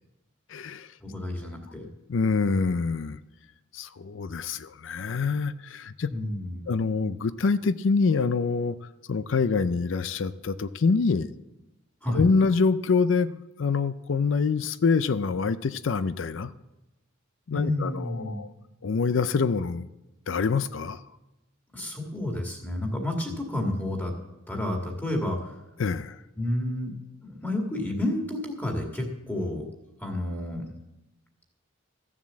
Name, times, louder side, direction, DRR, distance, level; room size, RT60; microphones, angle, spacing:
voice 1, 0.5-0.9 2.1-3.2 3.7-6.1 6.7-8.8 9.1-11.3 12.1-16.5 17.5-18.5 18.8-19.9 20.3-21.0 25.8-26.2, left 4 dB, 65° left, 14 dB, 0.5 m, -25 dB
voice 2, 1.0-1.9 6.1-6.7 12.0-12.3 17.5-18.4 21.7-24.1 24.5-25.6 26.4-26.9 27.2-29.6 30.0-30.7, left 1 dB, 10° left, 2 dB, 1.9 m, -30 dB
14.0 x 7.3 x 7.5 m, 0.97 s
head